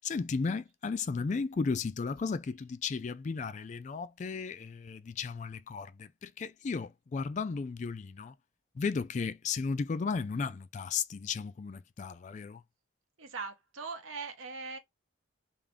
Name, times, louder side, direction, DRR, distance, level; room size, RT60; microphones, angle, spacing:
voice 1, 0.0-8.3 8.8-12.6, left 5 dB, 40° left, 0.3 m, -34 dB
voice 2, 13.2-14.8, right 4 dB, 90° right, 0.8 m, -40 dB
3.5 x 2.5 x 3.5 m
head